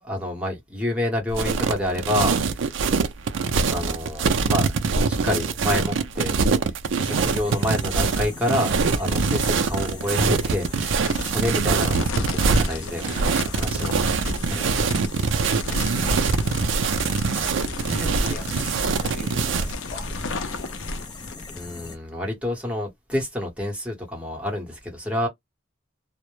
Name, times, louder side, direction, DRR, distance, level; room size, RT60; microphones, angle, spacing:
voice 1, 0.0-2.8 3.7-4.7 5.1-6.4 7.0-14.8 21.5-25.3, left 1 dB, 5° right, 0.9 m, -28 dB
sound 1, 1.3-19.7, right 4 dB, 65° right, 0.4 m, -23 dB
sound 2, 7.0-22.0, left 3 dB, 20° left, 0.4 m, -40 dB
sound 3, 11.0-21.6, left 3 dB, 75° left, 0.5 m, -33 dB
voice 2, 15.6-16.6 17.8-20.3, left 2 dB, 45° left, 0.8 m, -41 dB
2.1 x 2.0 x 2.9 m
head